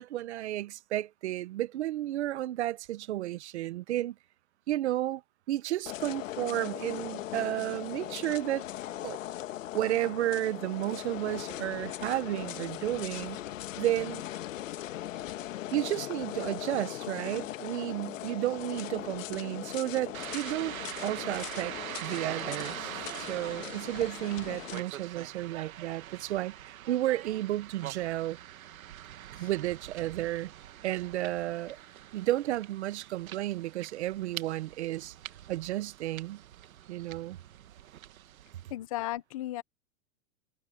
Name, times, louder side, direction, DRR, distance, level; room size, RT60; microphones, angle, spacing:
voice 1, 0.0-4.1 4.7-5.2 5.5-8.7 9.0-9.2 9.7-13.4 13.8-14.2 15.7-20.8 21.0-21.7 22.0-22.9 23.2-28.4 29.4-30.5 30.8-31.8 32.1-35.1 35.5-36.4 36.9-37.4, right 14 dB, 55° right, 0.8 m, -32 dB
sound 1, 5.9-24.8, left 13 dB, 65° left, 1.5 m, -39 dB
sound 2, 20.1-38.7, right 12 dB, 85° right, 1.8 m, -44 dB
voice 2, 38.7-39.6, left 15 dB, 25° left, 0.7 m, -35 dB
supercardioid pair, 175°, 41 cm